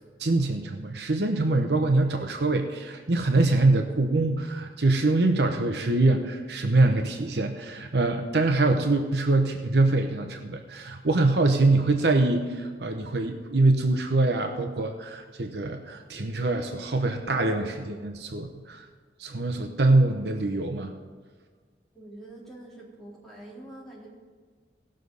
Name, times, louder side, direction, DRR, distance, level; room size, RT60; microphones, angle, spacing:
voice 1, 0.2-18.8 19.2-20.9, right 2 dB, 65° right, 5 dB, 0.8 m, -24 dB
voice 2, 21.9-24.1, right 1 dB, ahead, -7 dB, 3.6 m, -45 dB
17.5 x 6.5 x 5.4 m, 1.5 s
head